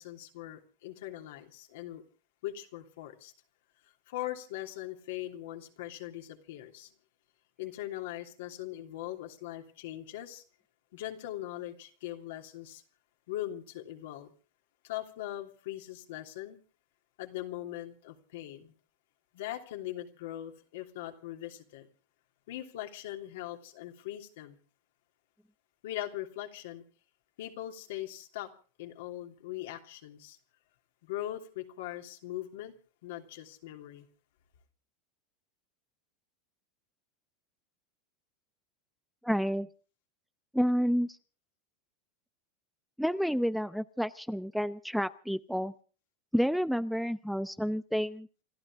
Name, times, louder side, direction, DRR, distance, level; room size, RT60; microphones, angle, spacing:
voice 1, 0.0-2.0 2.4-3.3 4.1-6.9 7.6-10.4 10.9-12.8 13.3-14.3 14.8-16.6 17.2-18.7 19.3-21.9 22.5-24.6 25.8-26.8 27.4-28.5 28.8-30.4 31.0-32.7 33.0-34.1, left 14 dB, 75° left, 3 dB, 3.0 m, -40 dB
voice 2, 39.2-39.7 40.5-41.1 43.0-45.7 46.3-48.3, equal, ahead, 13 dB, 0.7 m, -29 dB
29.0 x 13.0 x 3.7 m, 0.39 s
hypercardioid pair, 110°, 0 cm